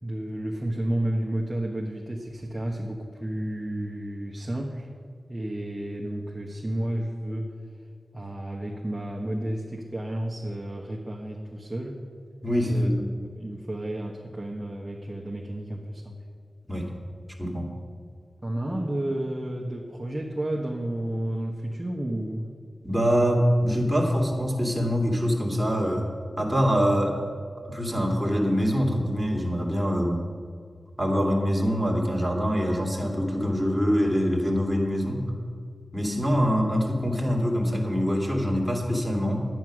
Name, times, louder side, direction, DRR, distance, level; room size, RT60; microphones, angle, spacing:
voice 1, 0.0-4.9 5.3-7.5 8.1-12.0 12.7-12.9 13.3-16.2 18.4-22.4 23.9-24.0, right 1 dB, 20° right, -2 dB, 1.3 m, -31 dB
voice 2, 12.4-13.0 16.7-16.9 17.4-17.7 22.8-26.1 26.4-27.2 27.7-30.2 31.0-35.2 35.9-39.5, equal, ahead, -2 dB, 2.6 m, -24 dB
10.5 x 9.2 x 6.3 m, 2.1 s
cardioid pair, 55°, 0 cm